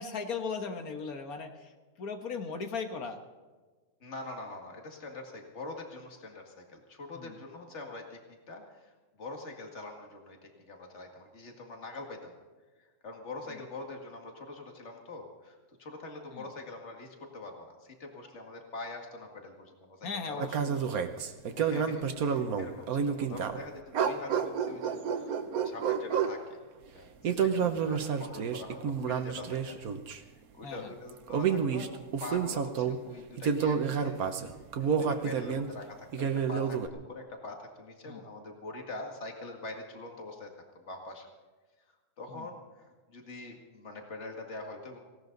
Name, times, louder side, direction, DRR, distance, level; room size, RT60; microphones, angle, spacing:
voice 1, 0.0-3.2 7.1-7.4 13.5-13.6 16.3-16.5 20.0-21.0 27.5-27.7 30.6-30.9 38.1-38.2 42.3-42.5, left 5 dB, 90° left, 5 dB, 1.9 m, -38 dB
voice 2, 4.0-8.2 8.5-12.4 12.8-20.8 21.1-25.3 25.6-26.6 26.9-29.8 30.1-34.2 34.8-41.3 42.2-45.0, left 2 dB, 50° left, 2 dB, 2.3 m, -44 dB
sound 1, 20.4-23.6 23.9-26.4 27.2-30.2 31.1-33.0 33.4-35.7 36.1-36.9, right 7 dB, 80° right, 1.5 m, -30 dB
18.5 x 17.0 x 4.0 m, 1.3 s
omnidirectional pair, 1.5 m